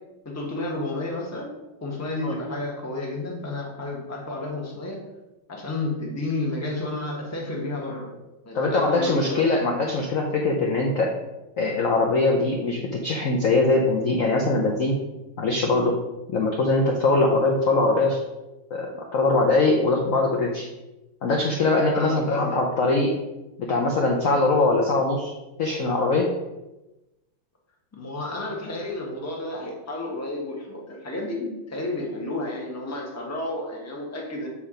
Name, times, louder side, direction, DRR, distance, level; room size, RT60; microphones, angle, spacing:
voice 1, 0.2-5.0 5.5-8.1 8.4-9.4 21.9-22.6 27.9-34.5, left 2 dB, 15° left, -1 dB, 0.7 m, -31 dB
voice 2, 8.5-11.1 11.6-15.0 15.4-16.0 16.3-18.2 18.7-20.7 21.2-23.1 23.6-25.3 25.6-26.3, left 2 dB, 70° left, 0 dB, 0.8 m, -22 dB
7.2 x 3.4 x 5.0 m, 1.0 s
omnidirectional pair, 2.3 m